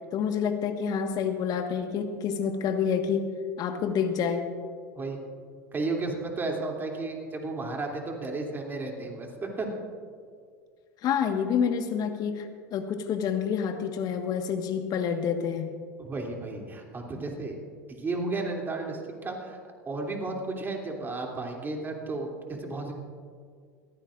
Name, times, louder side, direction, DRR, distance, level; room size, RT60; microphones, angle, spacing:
voice 1, 0.1-3.3 3.6-4.4 11.0-15.7 22.7-22.8, left 7 dB, 45° left, 6 dB, 1.5 m, -28 dB
voice 2, 5.7-9.7 16.0-17.6 17.9-19.6 19.8-22.9, right 3 dB, 25° right, 1 dB, 2.9 m, -33 dB
22.0 x 15.0 x 2.6 m, 2.1 s
hypercardioid pair, 85°, 9 cm